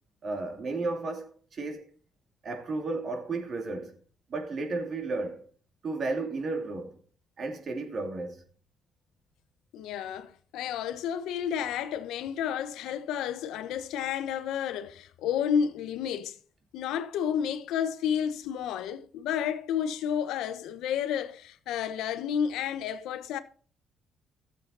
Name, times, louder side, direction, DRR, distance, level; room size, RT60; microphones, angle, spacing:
voice 1, 0.2-1.8 2.4-4.0 4.3-5.5 5.8-7.0 7.4-8.4, right 3 dB, 50° right, 2.7 m, -33 dB
voice 2, 9.7-16.4 16.7-23.4, left 8 dB, 90° left, 1.0 m, -31 dB
13.5 x 7.6 x 4.1 m
cardioid pair, 90°, 0 cm